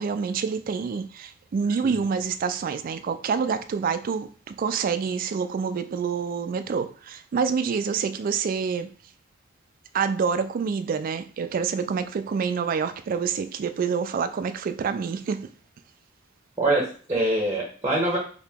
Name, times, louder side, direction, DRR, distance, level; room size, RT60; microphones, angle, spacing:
voice 1, 0.0-8.9 9.9-15.5, right 6 dB, 45° right, 0.3 m, -27 dB
voice 2, 16.6-18.2, right 1 dB, 15° right, 0.7 m, -24 dB
2.9 x 2.7 x 3.4 m
head